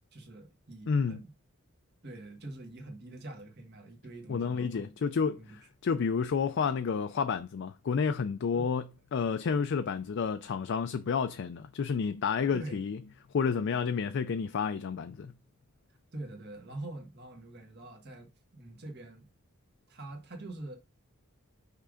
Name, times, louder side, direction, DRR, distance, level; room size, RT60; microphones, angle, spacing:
voice 1, 0.1-1.3 2.0-4.9 5.2-5.6 8.5-8.7 12.5-12.8 15.9-19.3 19.9-20.8, right 2 dB, 50° right, 1.5 m, -45 dB
voice 2, 0.9-1.2 4.3-8.8 9.1-13.0 13.3-15.3, left 6 dB, 55° left, 0.4 m, -30 dB
5.6 x 3.6 x 4.9 m
head